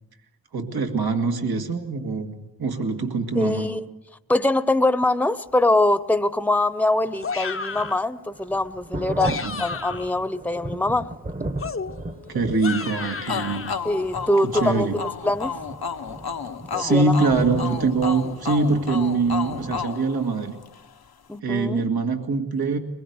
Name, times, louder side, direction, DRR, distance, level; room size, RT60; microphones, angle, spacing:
voice 1, 0.5-3.7 9.2-9.5 12.3-13.7 14.4-15.0 16.8-20.6 21.4-22.8, right 3 dB, 75° right, 2.0 m, -24 dB
voice 2, 3.3-3.8 4.3-11.1 13.8-15.5 16.7-17.3 21.3-21.8, left 2 dB, 5° left, 0.9 m, -23 dB
Thunder, 7.0-19.8, right 1 dB, 25° right, 1.1 m, -36 dB
sound 1, 7.2-8.1 9.0-10.2 11.6-13.7, left 4 dB, 35° left, 0.8 m, -32 dB
sound 2, 13.3-20.9, left 6 dB, 75° left, 1.1 m, -32 dB
22.5 x 21.0 x 8.1 m
cardioid pair, 50°, 37 cm